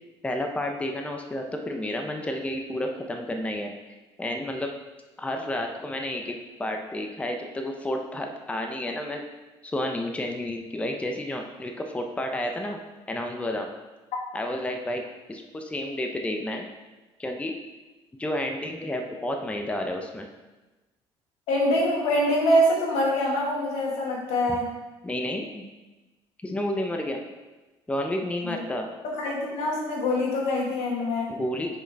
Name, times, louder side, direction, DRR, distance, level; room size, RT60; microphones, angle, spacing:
voice 1, 0.2-3.7 4.2-4.7 5.2-9.2 9.7-12.8 13.1-13.7 14.3-16.7 17.2-17.5 18.2-20.3 25.0-25.6 26.4-27.2 27.9-28.9 31.3-31.8, left 1 dB, 10° left, 3 dB, 0.6 m, -31 dB
voice 2, 21.5-24.7 28.4-28.6 29.0-31.3, equal, 85° left, -2 dB, 1.6 m, -24 dB
6.2 x 5.1 x 3.4 m, 1.1 s
cardioid pair, 100°, 11 cm